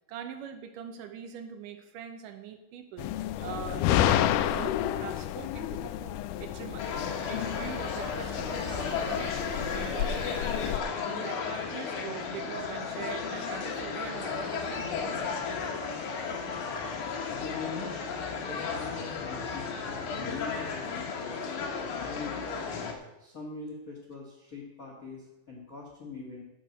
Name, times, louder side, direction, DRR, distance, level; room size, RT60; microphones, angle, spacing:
voice 1, 0.1-3.1 3.4-6.9 7.3-10.4 11.1-15.2, right 9 dB, 75° right, 8 dB, 2.3 m, -42 dB
sound 1, 3.0-10.8, left 12 dB, 80° left, 1.9 m, -30 dB
sound 2, 6.8-22.9, left 5 dB, 65° left, 2.6 m, -34 dB
voice 2, 17.3-18.0 18.4-21.4 21.9-22.7 23.2-26.4, left 4 dB, 45° left, -1 dB, 1.1 m, -42 dB
10.5 x 6.0 x 8.2 m, 0.95 s
omnidirectional pair, 4.1 m